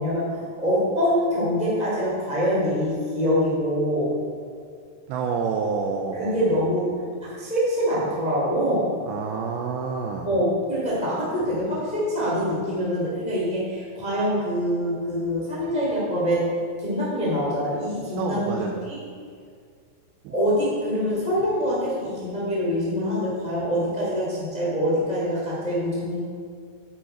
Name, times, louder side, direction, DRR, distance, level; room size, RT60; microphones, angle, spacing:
voice 1, 0.0-4.1 6.1-8.9 10.2-16.5 16.8-19.0 20.3-26.2, equal, 20° left, -7 dB, 1.2 m, -25 dB
voice 2, 5.1-6.5 9.0-10.3 18.2-18.8 20.2-20.3, right 5 dB, 85° right, 1 dB, 2.5 m, -28 dB
9.4 x 9.1 x 4.4 m, 2.1 s
omnidirectional pair, 5.6 m